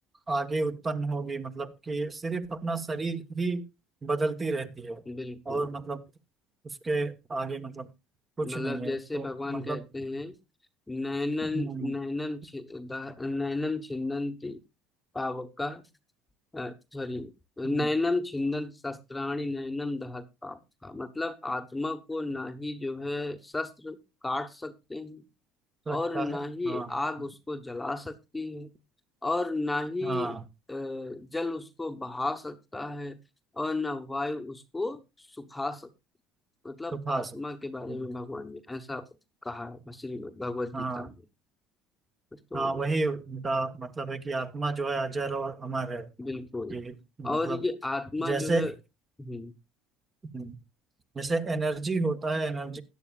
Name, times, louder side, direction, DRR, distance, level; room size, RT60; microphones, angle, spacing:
voice 1, 0.3-3.7 4.0-5.0 5.4-6.0 6.6-7.9 8.4-9.8 11.4-11.9 17.6-17.9 25.9-26.4 26.6-26.9 30.0-30.4 36.9-37.3 37.9-38.0 40.7-41.1 42.5-46.1 46.7-47.6 48.2-48.7 50.3-50.6 51.1-52.8, right 3 dB, 25° right, 10 dB, 1.3 m, -31 dB
voice 2, 5.1-5.7 8.4-10.4 10.9-14.6 15.1-15.9 16.5-25.2 25.9-28.7 29.2-30.4 30.7-33.2 33.5-35.9 36.6-39.0 39.4-41.2 42.3-42.8 46.2-46.8 47.2-48.7 49.2-49.5, left 2 dB, 10° left, 8 dB, 1.1 m, -33 dB
16.5 x 11.0 x 2.4 m, 0.25 s
supercardioid pair, 105°, 0 cm